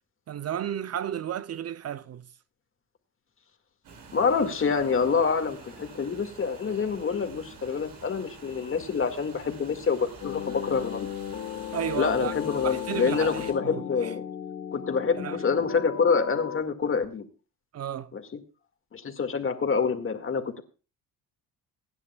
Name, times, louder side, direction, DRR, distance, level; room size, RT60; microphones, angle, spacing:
voice 1, 0.3-2.3 11.7-12.4 12.6-14.1 15.2-15.4 17.7-18.1, right 10 dB, 45° right, 0.6 m, -33 dB
sound 1, 3.8-13.5, right 5 dB, 75° right, 6.3 m, -47 dB
voice 2, 4.1-11.1 12.0-14.2 14.7-17.3 18.1-18.2 18.9-20.6, left 5 dB, 40° left, 2.0 m, -26 dB
sound 2, 10.2-16.6, left 10 dB, 55° left, 1.7 m, -36 dB
24.5 x 9.8 x 2.3 m
cardioid pair, 105°, 34 cm